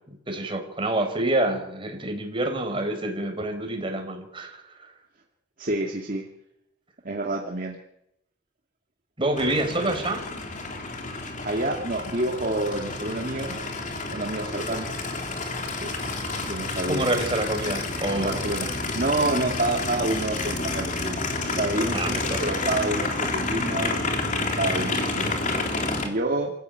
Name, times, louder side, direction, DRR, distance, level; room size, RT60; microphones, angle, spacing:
voice 1, 0.1-4.9 9.2-10.2 16.9-18.6 21.9-22.4, right 1 dB, 30° right, 4 dB, 4.6 m, -27 dB
voice 2, 5.6-6.3 7.0-7.8 11.4-13.6 14.1-15.0 15.7-15.9 16.4-17.2 18.1-18.7 18.9-26.5, right 2 dB, 45° right, 0 dB, 2.3 m, -28 dB
Aircraft, 9.4-26.1, left 3 dB, 45° left, 3.4 m, -29 dB
28.0 x 14.5 x 9.3 m, 0.85 s
head